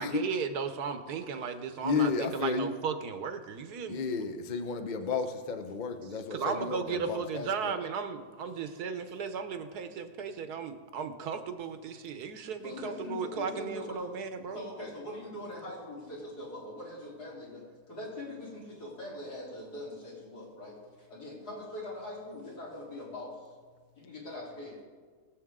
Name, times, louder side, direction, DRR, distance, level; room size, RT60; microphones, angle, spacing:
voice 1, 0.0-4.0 6.3-14.6, right 6 dB, 75° right, 9 dB, 1.4 m, -35 dB
voice 2, 1.8-2.7 3.9-7.8, left 4 dB, 40° left, 7 dB, 0.7 m, -32 dB
voice 3, 12.6-14.1 14.5-23.5 24.0-24.8, left 1 dB, 75° left, -6 dB, 4.4 m, -42 dB
22.0 x 7.6 x 3.7 m, 1.5 s
omnidirectional pair, 1.7 m